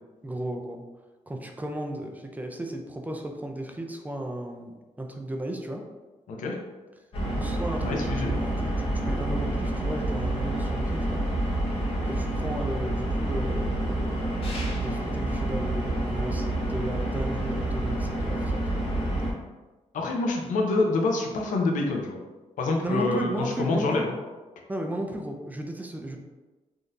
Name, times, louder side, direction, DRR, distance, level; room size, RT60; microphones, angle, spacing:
voice 1, 0.2-0.8 1.3-5.8 7.4-8.7 9.1-11.2 12.0-18.6 20.4-20.6 22.8-24.1 24.7-26.2, right 1 dB, 10° right, 2 dB, 0.4 m, -35 dB
sound 1, 7.1-19.3, right 1 dB, 45° left, 0.9 m, -28 dB
voice 2, 7.8-8.4 19.9-22.2 22.6-24.0, left 3 dB, 80° left, 1 dB, 0.6 m, -26 dB
3.6 x 2.7 x 2.5 m, 1.2 s
cardioid pair, 105°, 13 cm